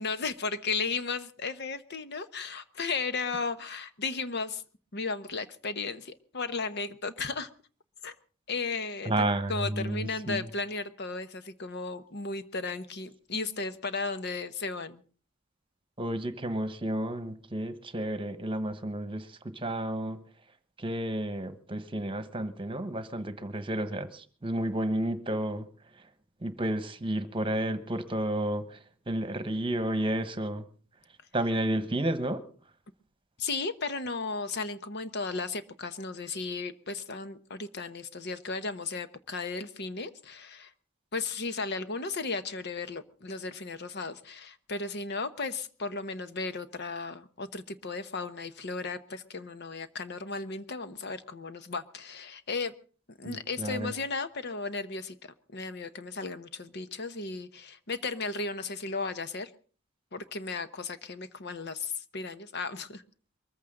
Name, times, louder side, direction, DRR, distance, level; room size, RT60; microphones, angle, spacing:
voice 1, 0.0-4.6 4.9-7.5 8.0-8.1 8.5-15.0 33.4-40.7 41.1-52.7 53.2-59.5 60.1-63.0, left 4 dB, 55° left, 1.0 m, -35 dB
voice 2, 9.0-10.5 16.0-20.2 20.8-25.7 26.4-30.7 31.3-32.4 53.2-53.9, right 1 dB, 25° right, 1.3 m, -31 dB
22.5 x 14.5 x 3.8 m
head